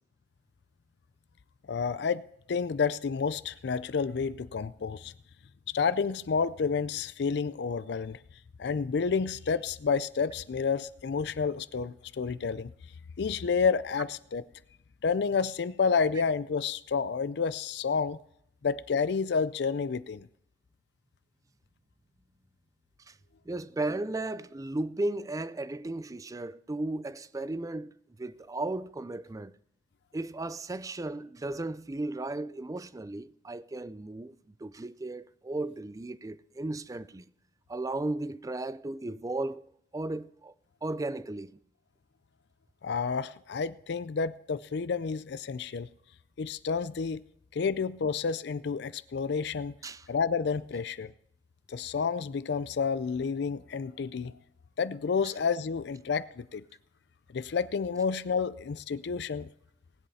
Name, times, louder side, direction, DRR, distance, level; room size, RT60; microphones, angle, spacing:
voice 1, 1.7-2.2 2.5-5.1 5.7-8.2 8.6-12.7 13.2-14.4 15.0-18.2 18.6-20.3 42.8-45.9 46.4-47.2 47.5-49.7 50.1-51.1 51.7-54.3 54.8-56.6 57.3-59.5, left 5 dB, 65° left, 0.4 m, -30 dB
voice 2, 23.5-27.9 28.2-29.5 30.1-37.2 37.7-39.6 39.9-40.5 40.8-41.6 49.8-50.1, right 2 dB, 20° right, 0.4 m, -35 dB
19.0 x 8.0 x 4.2 m
head